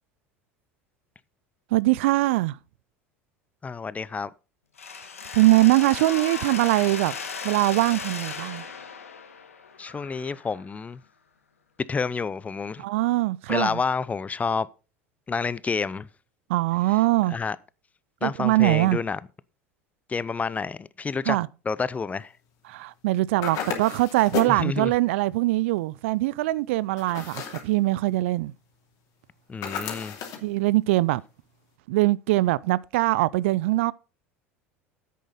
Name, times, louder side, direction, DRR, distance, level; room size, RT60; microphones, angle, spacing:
voice 1, 1.7-2.6 5.3-7.1 7.4-8.6 12.8-13.8 16.5-17.4 18.2-19.0 21.3-21.5 22.7-28.5 30.4-31.2 31.9-33.9, right 18 dB, 65° right, 0.4 m, -22 dB
voice 2, 3.6-4.3 9.8-11.0 11.9-12.9 13.5-14.7 15.3-16.1 17.3-17.6 18.2-19.2 20.1-21.4 21.7-22.3 24.5-24.9 29.5-30.2, left 5 dB, 20° left, 0.5 m, -29 dB
Mechanisms, 4.8-10.6, left 5 dB, 85° left, 1.5 m, -36 dB
sound 1, 23.4-24.6 27.0-27.7 29.6-30.5, left 8 dB, 50° left, 2.7 m, -33 dB
10.0 x 8.4 x 4.1 m
figure-of-eight pair, 75°, 7 cm